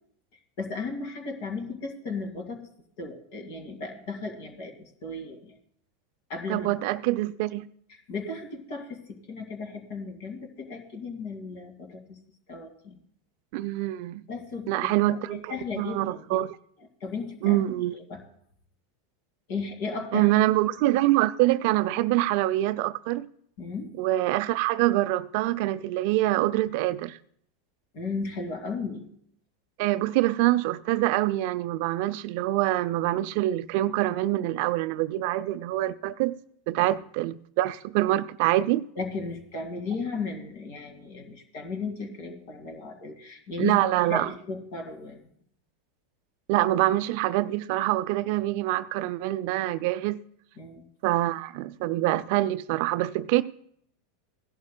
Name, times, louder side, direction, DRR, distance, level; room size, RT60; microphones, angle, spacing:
voice 1, 0.6-2.6 3.0-5.6 6.3-6.7 7.9-12.2 12.5-13.0 14.3-16.4 16.8-17.6 17.9-18.2 19.5-20.3 23.6-23.9 27.9-29.1 39.0-45.3 50.6-50.9, left 4 dB, 60° left, 2.1 m, -35 dB
voice 2, 6.5-7.7 13.5-14.2 14.7-16.5 17.4-17.9 20.1-23.3 24.0-27.2 29.8-36.4 36.7-38.9 43.6-44.3 46.5-50.2 51.0-53.4, right 16 dB, 60° right, 0.4 m, -25 dB
17.0 x 11.5 x 2.2 m
hypercardioid pair, 90°, 0 cm